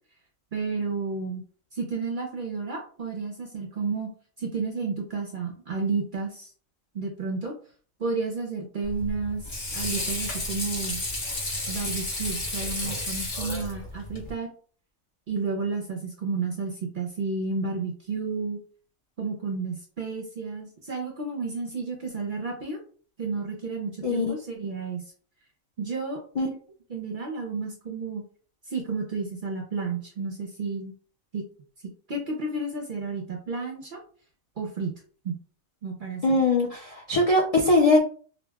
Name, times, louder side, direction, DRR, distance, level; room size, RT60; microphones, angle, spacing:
voice 1, 0.5-1.4 1.7-4.1 4.4-6.5 6.9-7.5 8.0-11.0 11.7-14.5 15.3-18.6 19.2-22.8 23.2-25.0 25.8-26.6 26.9-28.2 28.7-30.9 31.3-31.4 31.8-34.0 34.6-34.9 35.2-35.4 35.8-36.4, right 4 dB, 55° right, 2 dB, 0.6 m, -31 dB
Water / Sink (filling or washing), 8.8-14.3, left 2 dB, 40° left, 0.9 m, -32 dB
voice 2, 24.0-24.3 26.4-26.5 36.2-38.0, left 2 dB, 60° left, -1 dB, 0.3 m, -21 dB
4.7 x 2.1 x 2.3 m, 0.44 s
omnidirectional pair, 1.4 m